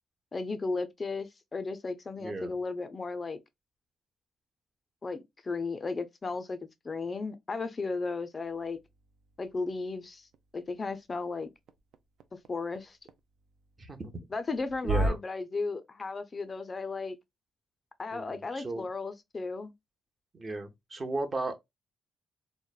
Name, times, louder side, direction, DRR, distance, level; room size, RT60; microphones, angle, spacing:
voice 1, 0.3-3.4 5.0-8.8 9.4-10.3 10.5-11.5 12.3-13.0 14.3-17.2 18.0-19.7, left 3 dB, 30° left, 0.4 m, -35 dB
voice 2, 2.2-2.6 13.8-14.1 14.8-15.2 18.1-18.9 20.3-21.5, right 2 dB, 35° right, 0.7 m, -35 dB
sound 1, 8.4-15.1, right 2 dB, 70° right, 0.4 m, -38 dB
3.0 x 2.1 x 2.2 m
cardioid pair, 90°, 0 cm